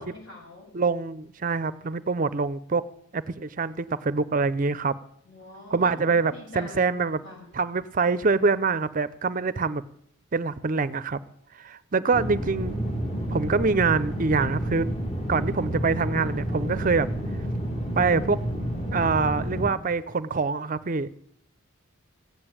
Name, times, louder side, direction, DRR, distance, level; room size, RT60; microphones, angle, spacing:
voice 1, 0.0-0.7 5.2-6.9 7.2-7.5, left 2 dB, 60° left, -1 dB, 7.5 m, -44 dB
voice 2, 0.7-2.8 3.1-5.0 5.7-7.2 7.5-9.8 10.3-11.2 11.5-12.8 13.3-14.9 15.3-17.1 18.0-18.4 18.9-21.1, right 4 dB, 35° right, 16 dB, 0.5 m, -25 dB
sound 1, 12.1-19.7, equal, 30° left, 2.6 m, -30 dB
16.0 x 8.9 x 8.8 m, 0.69 s
head